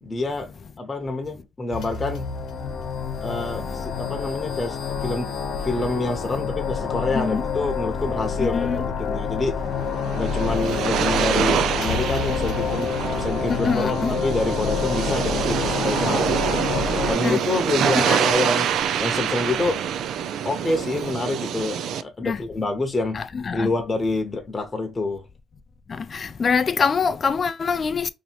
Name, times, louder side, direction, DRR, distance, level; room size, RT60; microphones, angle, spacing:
voice 1, 0.0-2.3 3.2-5.3 5.6-9.6 10.1-16.6 17.1-18.7 19.0-19.8 20.4-23.2 23.5-25.2, left 2 dB, 25° left, 0.9 m, -27 dB
sound 1, 1.7-17.1, left 6 dB, 75° left, 1.0 m, -28 dB
voice 2, 7.1-7.4 8.4-8.9 13.5-14.2 17.2-17.4 17.9-18.2 22.2-22.4 23.1-23.7 25.9-28.1, left 5 dB, 45° left, 0.4 m, -25 dB
sound 2, 9.8-22.0, right 8 dB, 75° right, 0.3 m, -26 dB
2.9 x 2.6 x 4.3 m
cardioid pair, 90°, 0 cm